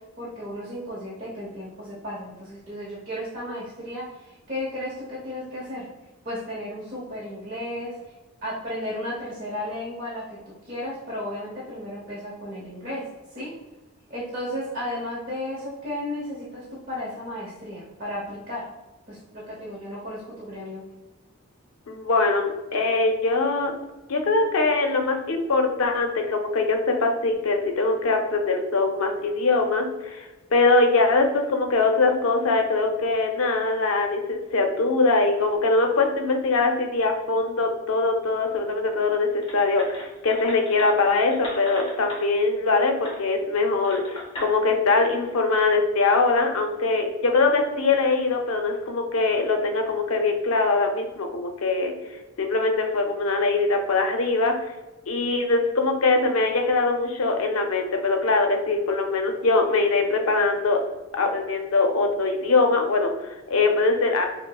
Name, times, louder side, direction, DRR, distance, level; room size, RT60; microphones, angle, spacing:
voice 1, 0.2-5.9 6.2-8.0 8.4-10.2 10.7-13.0 13.3-13.5 14.1-18.6 19.1-20.8, left 1 dB, 40° right, -7 dB, 0.8 m, -34 dB
voice 2, 21.9-23.7 24.1-51.9 52.4-54.6 55.1-60.8 61.1-64.3, left 3 dB, 70° left, 4 dB, 0.5 m, -22 dB
sound 1, 39.4-42.2 43.0-43.2 43.8-44.5, left 1 dB, 25° left, 0.6 m, -38 dB
5.6 x 2.0 x 2.3 m, 1.1 s
head